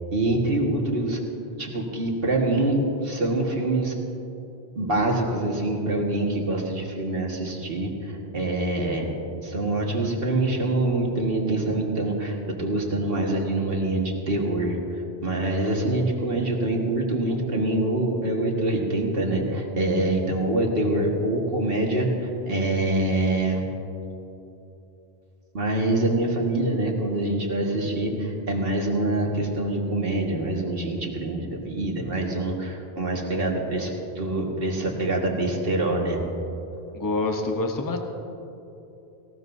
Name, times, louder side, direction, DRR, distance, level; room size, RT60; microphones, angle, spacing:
voice 1, 0.1-1.2 1.6-3.9 4.8-9.1 9.4-23.7 25.5-36.2, right 2 dB, 60° right, 0 dB, 2.0 m, -25 dB
voice 2, 36.9-38.0, left 3 dB, 20° left, 3 dB, 1.0 m, -26 dB
19.0 x 17.5 x 2.7 m, 3.0 s
omnidirectional pair, 1.1 m